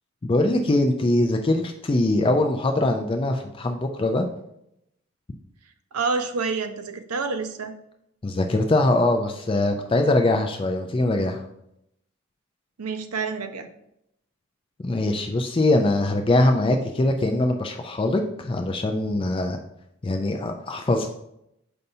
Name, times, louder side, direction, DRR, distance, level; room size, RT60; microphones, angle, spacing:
voice 1, 0.2-4.3 8.2-11.4 14.8-19.6 20.0-21.1, left 2 dB, 25° left, 4 dB, 0.3 m, -22 dB
voice 2, 5.9-7.7 12.8-13.7, right 4 dB, 80° right, 9 dB, 0.6 m, -28 dB
6.6 x 5.4 x 2.7 m, 0.79 s
head